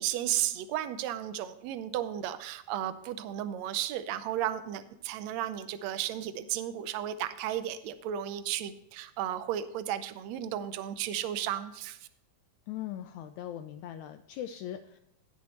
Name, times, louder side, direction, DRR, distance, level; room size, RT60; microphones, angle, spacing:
voice 1, 0.0-12.0, right 11 dB, 75° right, 12 dB, 1.7 m, -34 dB
voice 2, 12.7-15.0, left 11 dB, 80° left, 9 dB, 1.8 m, -40 dB
17.5 x 6.4 x 3.0 m, 0.81 s
omnidirectional pair, 3.7 m